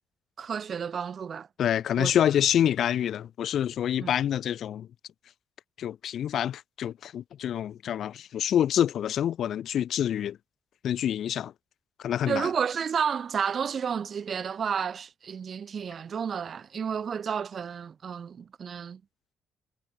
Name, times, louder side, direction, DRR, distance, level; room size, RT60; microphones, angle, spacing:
voice 1, 0.4-1.5 2.0-2.1 4.0-4.1 12.3-19.0, right 7 dB, 50° right, 2.1 m, -31 dB
voice 2, 1.6-4.9 5.8-10.4 10.8-11.5 12.0-12.5, left 10 dB, 70° left, 0.8 m, -27 dB
cardioid pair, 90°, 0 cm